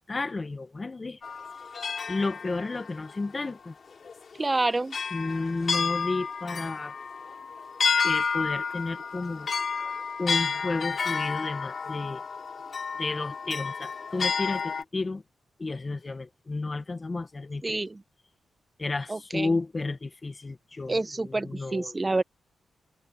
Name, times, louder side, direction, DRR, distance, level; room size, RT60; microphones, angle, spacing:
voice 1, 0.1-1.2 2.1-3.7 5.1-6.9 8.0-9.5 10.2-12.2 13.0-15.2 15.6-17.8 18.8-22.1, left 3 dB, 35° left, 1.8 m, -32 dB
sound 1, 1.2-3.1 4.0-4.1 4.9-14.8, left 5 dB, 55° left, 4.6 m, -31 dB
voice 2, 4.4-5.0 17.6-18.0 19.1-19.5 20.9-22.2, right 2 dB, 25° right, 1.2 m, -28 dB
cardioid pair, 55°, 0 cm